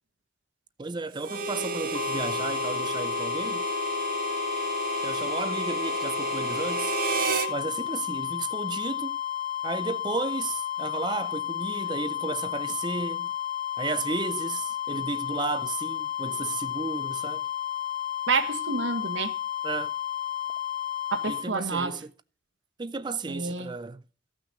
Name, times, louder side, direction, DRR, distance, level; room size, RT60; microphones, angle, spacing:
voice 1, 0.8-3.7 5.0-6.9 7.5-9.2 9.6-13.3 13.8-17.5 19.6-19.9 21.3-22.1 22.8-24.0, right 4 dB, 25° right, 0.4 m, -33 dB
Harmonica, 1.2-7.5, right 3 dB, 50° right, 1.5 m, -31 dB
sound 1, 1.9-21.5, left 11 dB, 30° left, 1.0 m, -32 dB
voice 2, 18.3-19.3 21.1-21.9 23.3-23.7, right 4 dB, 80° right, 1.3 m, -28 dB
15.0 x 6.0 x 6.2 m
head